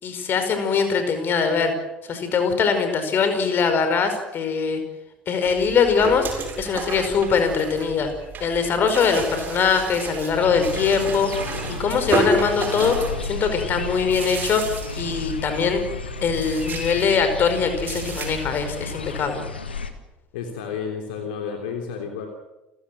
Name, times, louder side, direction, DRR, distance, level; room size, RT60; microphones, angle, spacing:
voice 1, 0.0-1.7 2.1-4.8 5.3-6.3 6.6-8.1 8.4-11.3 11.7-14.6 15.0-15.8 16.2-19.4, left 5 dB, 40° left, 8 dB, 5.1 m, -22 dB
sound 1, 5.5-19.2, right 3 dB, 35° right, 7.6 m, -32 dB
sound 2, 10.3-19.9, left 4 dB, 80° left, 1.7 m, -33 dB
voice 2, 20.3-22.3, left 6 dB, 65° left, 3 dB, 3.3 m, -31 dB
29.5 x 16.0 x 7.8 m, 0.99 s
figure-of-eight pair, 65°, 5 cm